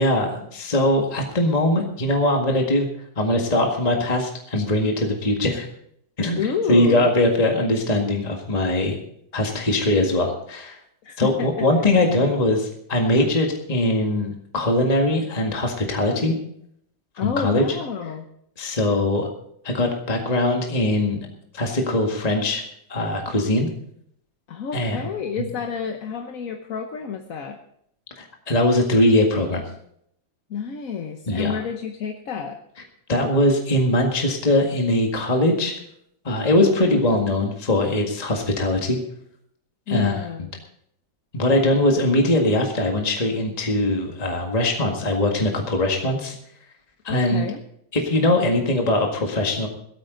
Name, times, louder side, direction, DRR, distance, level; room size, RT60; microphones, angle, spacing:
voice 1, 0.0-2.9 3.2-5.7 6.2-9.0 9.3-10.8 11.2-16.3 17.2-17.6 18.6-19.3 19.6-21.3 21.5-22.6 22.9-23.7 24.7-25.1 25.4-25.5 28.2-29.7 31.3-31.6 33.1-35.7 36.2-39.0 39.9-40.2 41.3-46.4 47.0-47.5 47.9-49.7, left 1 dB, 20° left, 1 dB, 1.8 m, -21 dB
voice 2, 6.3-7.1 11.0-11.5 12.0-12.1 17.2-18.3 24.5-27.6 30.5-32.6 36.5-37.0 39.9-40.5 47.1-47.6, left 6 dB, 50° left, 4 dB, 1.3 m, -29 dB
17.5 x 13.0 x 3.9 m, 0.70 s
omnidirectional pair, 2.0 m